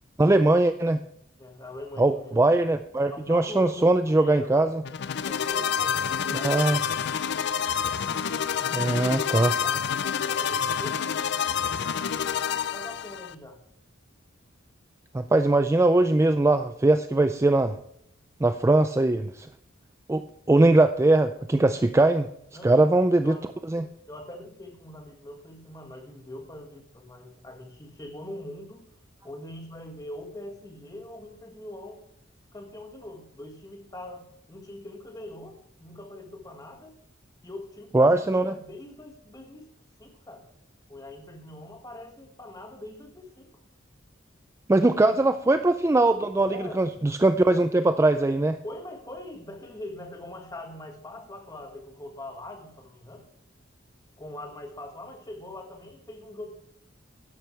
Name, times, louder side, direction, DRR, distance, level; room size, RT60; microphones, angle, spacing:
voice 1, 0.2-1.0 2.0-4.7 6.4-6.8 8.7-9.5 15.1-17.8 18.4-19.5 20.1-22.3 22.6-23.4 23.7-23.9 37.9-38.6 44.7-48.6, right 2 dB, 15° right, 9 dB, 0.3 m, -21 dB
voice 2, 1.4-2.7 3.0-4.7 5.2-6.5 8.7-11.6 12.7-13.6 22.5-22.9 23.2-23.5 23.8-28.8 29.2-32.0 32.5-37.0 37.4-39.6 40.0-40.4 40.9-43.5 44.9-45.1 46.5-46.8 48.6-53.2 54.2-56.5, left 1 dB, 20° left, 4 dB, 1.7 m, -42 dB
sound 1, 4.8-13.3, left 7 dB, 60° left, 0.5 m, -28 dB
12.0 x 10.5 x 3.3 m, 0.71 s
head